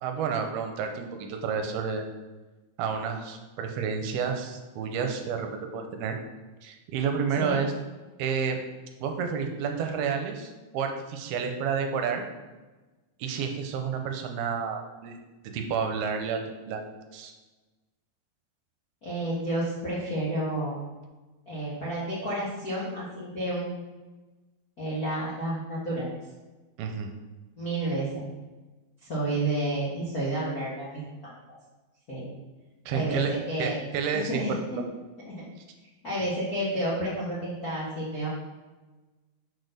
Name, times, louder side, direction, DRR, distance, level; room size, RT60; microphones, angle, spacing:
voice 1, 0.0-2.1 2.8-6.2 6.6-7.7 8.2-8.6 9.0-12.2 13.2-15.2 15.5-16.4 16.7-16.8 17.1-17.3 26.8-27.1 32.9-33.3 33.6-34.8, right 6 dB, 80° right, 5 dB, 2.7 m, -30 dB
voice 2, 19.0-20.7 21.4-23.8 24.8-26.1 27.6-28.3 29.0-31.3 32.1-32.3 32.9-33.8 34.1-34.6 35.3-35.4 36.0-38.3, right 1 dB, 50° left, -9 dB, 1.0 m, -30 dB
6.6 x 4.3 x 6.5 m, 1.2 s
omnidirectional pair, 4.5 m